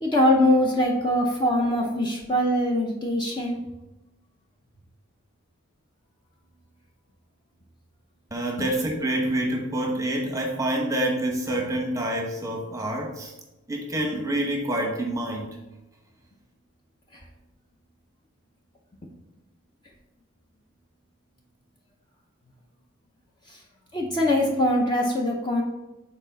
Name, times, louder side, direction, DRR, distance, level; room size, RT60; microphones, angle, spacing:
voice 1, 0.0-3.6 8.6-8.7 17.1-17.2 23.5-23.6 23.9-25.6, left 1 dB, 20° left, -1 dB, 0.7 m, -22 dB
voice 2, 8.3-13.3 13.7-15.5, right 1 dB, 15° right, 1 dB, 0.9 m, -27 dB
7.0 x 4.2 x 4.0 m, 0.98 s
head